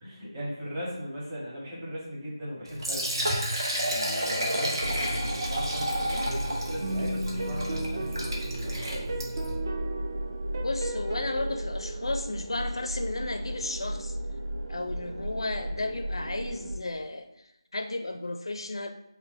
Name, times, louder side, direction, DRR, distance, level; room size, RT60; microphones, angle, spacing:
voice 1, 0.0-9.2, equal, 15° right, -7 dB, 1.1 m, -39 dB
Liquid, 2.7-9.5, right 1 dB, 55° right, 1.1 m, -31 dB
sound 1, 4.8-16.8, right 1 dB, 90° right, 0.6 m, -35 dB
sound 2, 6.8-12.1, right 2 dB, 35° right, 0.5 m, -36 dB
voice 2, 10.6-14.2 14.7-18.9, left 2 dB, 65° left, 6 dB, 0.4 m, -34 dB
5.6 x 2.1 x 2.6 m, 0.87 s
figure-of-eight pair, 165°, 3 cm